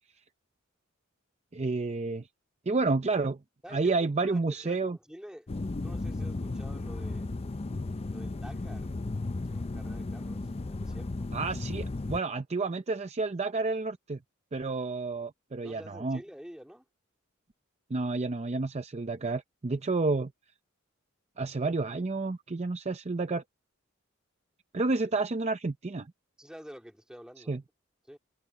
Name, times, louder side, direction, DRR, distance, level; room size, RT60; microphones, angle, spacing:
voice 1, 1.5-2.3 2.7-3.4 3.7-5.0 11.3-14.2 14.5-16.2 17.9-20.3 21.4-23.4 24.7-26.1 27.5-27.6, right 3 dB, 30° right, 0.6 m, -30 dB
voice 2, 3.6-5.5 5.8-7.3 8.1-8.9 9.5-11.3 15.6-16.8 26.4-27.6 28.1-28.2, equal, 5° right, 3.2 m, -48 dB
sound 1, 5.5-12.2, left 2 dB, 30° left, 0.5 m, -35 dB
head